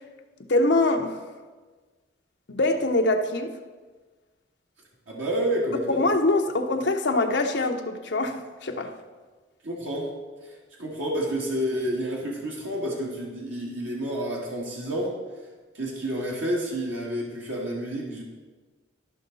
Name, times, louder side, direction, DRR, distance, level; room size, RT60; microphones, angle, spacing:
voice 1, 0.4-1.2 2.5-3.5 5.9-8.9, left 2 dB, 60° left, 4 dB, 0.8 m, -24 dB
voice 2, 5.1-6.0 9.6-10.1 10.4-15.1 15.7-18.2, equal, 85° right, -3 dB, 1.7 m, -29 dB
13.0 x 5.6 x 3.9 m, 1.3 s
head